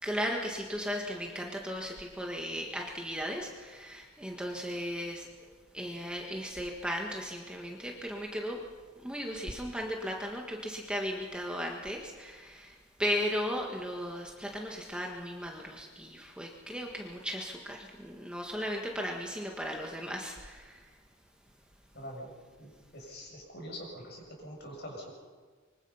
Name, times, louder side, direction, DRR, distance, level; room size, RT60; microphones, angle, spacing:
voice 1, 0.0-8.6 9.0-20.9, equal, 5° right, 0 dB, 1.7 m, -36 dB
voice 2, 21.9-22.3 22.6-25.1, equal, 50° left, 0 dB, 7.2 m, -44 dB
25.0 x 24.0 x 5.7 m, 1.5 s
head